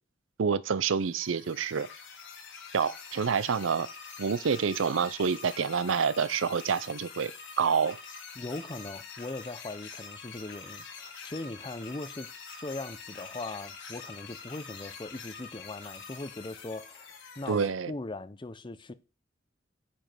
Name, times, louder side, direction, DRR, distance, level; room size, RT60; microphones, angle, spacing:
voice 1, 0.4-1.9 2.7-3.9 4.2-7.3 7.6-8.0 17.5-17.9, right 6 dB, 90° right, 0.5 m, -27 dB
sound 1, 1.0-17.7, left 5 dB, 75° left, 4.2 m, -45 dB
voice 2, 8.4-12.3 12.6-18.9, left 2 dB, 25° left, 0.6 m, -40 dB
8.8 x 5.3 x 6.0 m
head